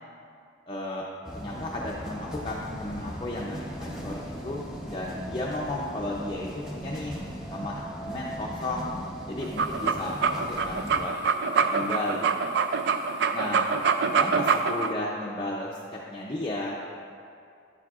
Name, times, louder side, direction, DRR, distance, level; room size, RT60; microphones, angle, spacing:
voice 1, 0.7-7.2 7.5-8.9 9.3-10.1 10.5-11.1 11.5-12.6 13.3-13.7 14.1-16.9, left 1 dB, 25° left, -4 dB, 0.5 m, -34 dB
sound 1, 1.2-11.1, equal, 5° right, 0.8 m, -38 dB
sound 2, 9.4-14.9, right 5 dB, 55° right, 0.3 m, -24 dB
10.5 x 7.4 x 2.4 m, 2.4 s
head